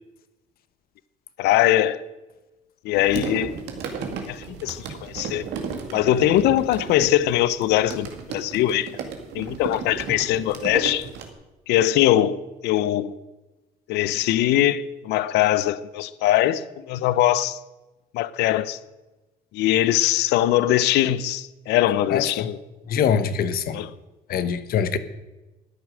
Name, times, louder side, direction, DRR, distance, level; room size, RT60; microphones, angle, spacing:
voice 1, 1.4-2.0 2.8-3.5 4.0-5.4 5.9-8.9 9.3-11.1 11.7-13.1 13.9-17.6 18.1-18.8 19.5-22.6 23.7-23.9, left 13 dB, 85° left, 0.6 m, -21 dB
sound 1, 2.9-11.3, right 6 dB, 85° right, 2.1 m, -34 dB
voice 2, 22.1-22.5 22.9-23.8 24.3-25.0, left 7 dB, 65° left, 1.2 m, -23 dB
13.0 x 9.7 x 6.4 m
cardioid pair, 110°, 17 cm